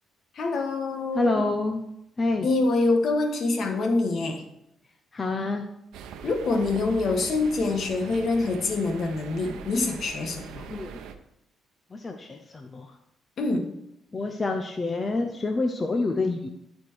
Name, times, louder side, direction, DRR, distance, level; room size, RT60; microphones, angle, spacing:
voice 1, 0.3-1.4 2.4-4.4 6.2-10.7 13.4-13.7, left 3 dB, 60° left, 4 dB, 1.5 m, -25 dB
voice 2, 1.1-1.8 2.2-2.5 5.1-5.6 10.7-11.0 11.9-12.9 14.1-16.5, left 2 dB, 30° left, 4 dB, 0.8 m, -27 dB
sound 1, 5.9-11.1, right 7 dB, 85° right, 0.8 m, -41 dB
13.0 x 4.5 x 4.7 m, 0.80 s
cardioid pair, 90°, 0 cm